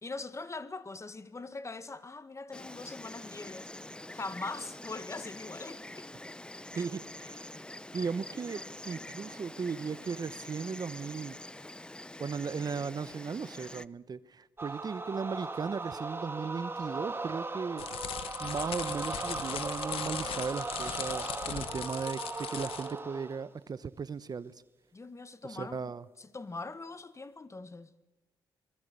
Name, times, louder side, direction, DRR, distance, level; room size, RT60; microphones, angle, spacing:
voice 1, 0.0-3.7 4.1-6.1 6.7-6.8 24.9-25.9 26.2-27.9, left 3 dB, 30° left, 1.8 m, -42 dB
Insect, 2.5-13.9, left 1 dB, 10° left, 0.7 m, -45 dB
voice 2, 6.8-7.5 7.9-11.4 12.2-17.8 18.4-24.6 25.5-26.0, right 5 dB, 45° right, 1.0 m, -37 dB
sound 1, 14.6-23.5, right 3 dB, 25° right, 2.5 m, -38 dB
sound 2, 17.8-23.0, left 10 dB, 75° left, 1.2 m, -39 dB
26.5 x 20.5 x 6.8 m
supercardioid pair, 60°, 10 cm